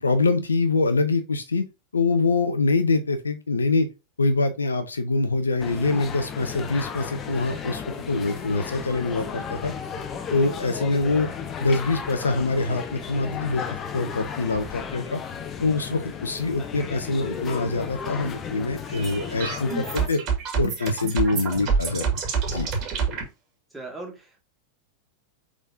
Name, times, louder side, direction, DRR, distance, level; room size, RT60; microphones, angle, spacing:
voice 1, 0.0-1.6 1.9-3.9 4.2-9.7 10.3-11.3 11.6-13.6 13.9-15.2 15.6-20.2 20.6-22.1 22.5-22.7, left 3 dB, 75° left, 0.6 m, -24 dB
sound 1, 5.6-20.1, left 7 dB, 25° left, 0.6 m, -34 dB
sound 2, 18.9-23.2, right 6 dB, 35° right, 1.8 m, -27 dB
voice 2, 23.7-24.4, right 2 dB, 5° right, 1.9 m, -38 dB
5.1 x 3.7 x 2.6 m
figure-of-eight pair, 90°, 0 cm